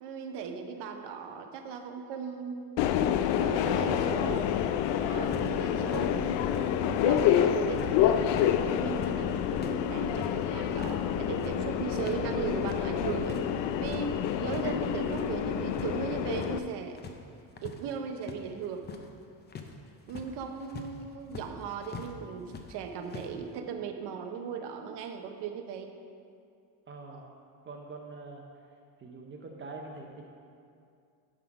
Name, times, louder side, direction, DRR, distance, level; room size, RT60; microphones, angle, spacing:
voice 1, 0.0-2.8 3.4-4.4 5.0-6.5 6.8-8.2 8.6-17.0 17.6-18.8 20.1-25.9 27.1-27.3, right 6 dB, 70° right, 5 dB, 0.9 m, -37 dB
Subway metro underground, 2.8-16.6, left 9 dB, 75° left, 0.5 m, -28 dB
voice 2, 3.4-4.3 26.9-27.3 27.6-28.4 29.0-30.2, right 3 dB, 30° right, 1 dB, 0.6 m, -43 dB
sound 1, 5.2-7.4 7.6-12.2 12.5-13.5 13.7-14.7 15.0-16.7 17.0-22.1 22.5-23.3, left 5 dB, 25° left, 0.5 m, -44 dB
10.0 x 3.7 x 5.9 m, 2.4 s
cardioid pair, 150°, 43 cm